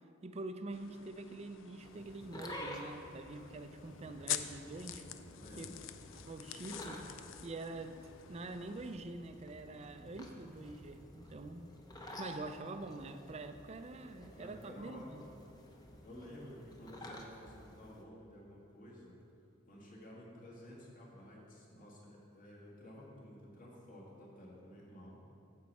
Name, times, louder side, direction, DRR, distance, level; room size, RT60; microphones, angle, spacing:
voice 1, 0.2-5.1 5.6-7.0 7.4-8.0 8.3-11.7 12.2-15.2, right 2 dB, 30° right, 9 dB, 0.4 m, -45 dB
sound 1, 0.7-9.0, left 11 dB, 80° left, 0.4 m, -46 dB
sound 2, 1.8-18.0, left 1 dB, 20° left, 0.7 m, -51 dB
voice 2, 5.3-5.8 14.3-15.3 16.0-19.2 19.7-25.2, equal, 45° left, -3 dB, 1.9 m, -53 dB
9.0 x 7.4 x 4.2 m, 2.6 s
head